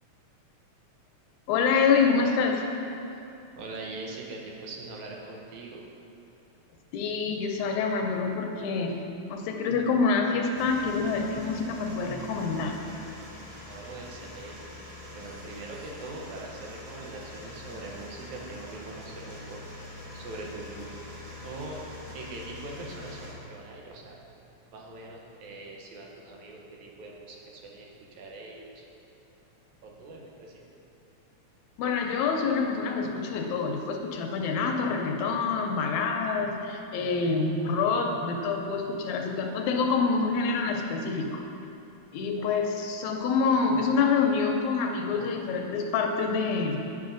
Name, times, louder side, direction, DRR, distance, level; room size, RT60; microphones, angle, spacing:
voice 1, 1.5-2.7 6.9-9.0 9.3-12.8 31.8-41.4 42.1-46.8, left 5 dB, 85° left, 2 dB, 2.0 m, -26 dB
voice 2, 3.6-5.9 13.6-14.8 15.1-19.6 20.1-21.1 21.4-24.2 24.7-28.9 29.8-30.6, right 2 dB, 80° right, -1 dB, 2.2 m, -42 dB
sound 1, 10.5-23.3, left 2 dB, 30° right, 0.9 m, -44 dB
9.3 x 6.1 x 2.5 m, 2.9 s
omnidirectional pair, 3.3 m